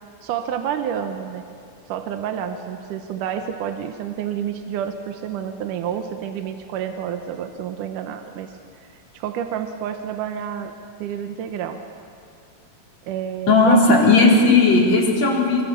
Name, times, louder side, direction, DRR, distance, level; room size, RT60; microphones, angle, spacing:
voice 1, 0.2-1.4 1.9-10.7 11.0-11.8 13.0-14.2 14.5-14.6, right 9 dB, 80° right, 6 dB, 2.5 m, -29 dB
voice 2, 13.5-15.6, left 3 dB, 55° left, -2 dB, 4.8 m, -15 dB
25.5 x 23.5 x 7.0 m, 2.4 s
omnidirectional pair, 3.7 m